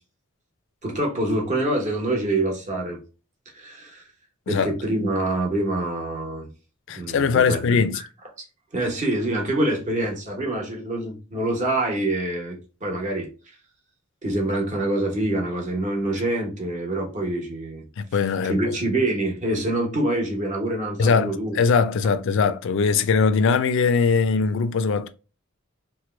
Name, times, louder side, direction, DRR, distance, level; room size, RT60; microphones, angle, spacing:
voice 1, 0.8-3.0 3.5-4.0 4.5-6.5 6.9-8.1 8.7-13.3 14.2-17.9 18.5-21.6, right 1 dB, 40° right, 1.0 m, -26 dB
voice 2, 6.9-8.0 18.0-18.6 21.0-25.1, left 5 dB, 65° left, 0.4 m, -21 dB
3.0 x 2.2 x 3.1 m
head